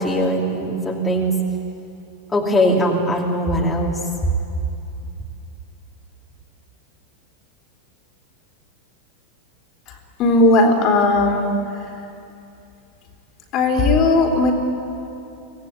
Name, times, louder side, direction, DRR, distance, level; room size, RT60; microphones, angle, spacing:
voice 1, 0.0-1.3 2.3-4.0, equal, 15° left, -3 dB, 2.9 m, -20 dB
voice 2, 9.9-11.5 11.8-11.9 13.5-14.5, left 2 dB, 35° left, 2 dB, 3.6 m, -17 dB
25.0 x 18.0 x 8.9 m, 2.7 s
figure-of-eight pair, 90°, 0 cm